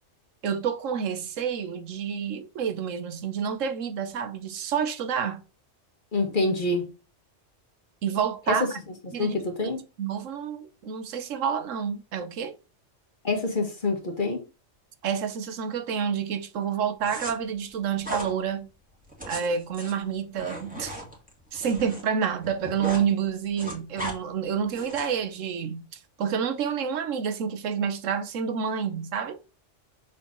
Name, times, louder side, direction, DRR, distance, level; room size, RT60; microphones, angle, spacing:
voice 1, 0.4-5.4 8.0-8.7 9.1-9.4 10.0-12.5 15.0-18.7 19.3-21.0 21.5-25.8 26.2-29.4, right 7 dB, 90° right, 1.2 m, -29 dB
voice 2, 6.1-6.8 8.5-8.6 9.2-9.8 13.2-14.4, left 2 dB, 40° left, 1.7 m, -26 dB
sound 1, 17.0-17.3 18.0-18.3 19.0-22.0 22.3-23.1 23.3-24.2 24.7-25.2, right 1 dB, 5° right, 1.9 m, -37 dB
6.5 x 4.0 x 3.8 m
omnidirectional pair, 1.3 m